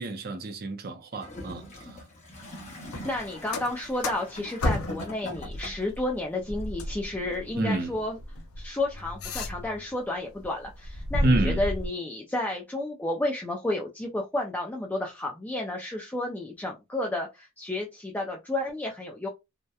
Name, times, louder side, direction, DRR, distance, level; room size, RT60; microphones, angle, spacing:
voice 1, 0.0-2.0 7.6-8.0 11.2-11.6, right 2 dB, 45° right, 0.5 m, -28 dB
Gurgling / Toilet flush, 1.1-6.0 6.8-6.9, left 1 dB, 30° left, 0.9 m, -42 dB
sound 1, 2.8-5.1 5.4-9.9 10.3-11.9, left 1 dB, 90° left, 0.5 m, -33 dB
voice 2, 3.0-8.2 8.6-19.3, left 1 dB, 10° left, 0.3 m, -31 dB
2.7 x 2.1 x 2.3 m
head